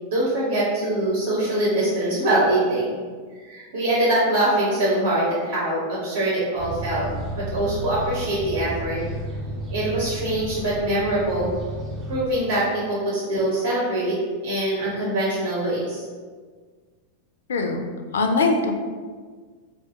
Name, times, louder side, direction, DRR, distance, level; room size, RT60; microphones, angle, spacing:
voice 1, 0.1-3.0 3.4-7.1 7.4-9.0 9.7-11.5 12.1-14.2 14.4-16.1, right 1 dB, 60° right, -6 dB, 0.8 m, -23 dB
sound 1, 6.6-12.2, right 1 dB, 35° right, 0.6 m, -32 dB
voice 2, 17.5-17.8 18.1-18.7, left 3 dB, 65° left, 4 dB, 0.3 m, -21 dB
2.6 x 2.1 x 3.5 m, 1.5 s
figure-of-eight pair, 90°, 0 cm